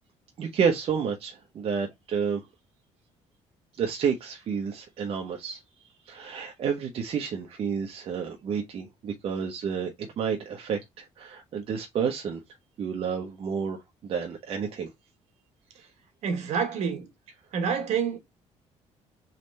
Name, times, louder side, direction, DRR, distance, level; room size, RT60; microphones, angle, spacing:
voice 1, 0.4-2.4 3.8-5.6 6.1-12.4 12.8-13.8 14.0-14.9, right 6 dB, 50° right, 1.0 m, -30 dB
voice 2, 16.2-17.1 17.5-18.2, right 6 dB, 70° right, 1.6 m, -27 dB
4.1 x 3.2 x 4.0 m
cardioid pair, 130°, 12 cm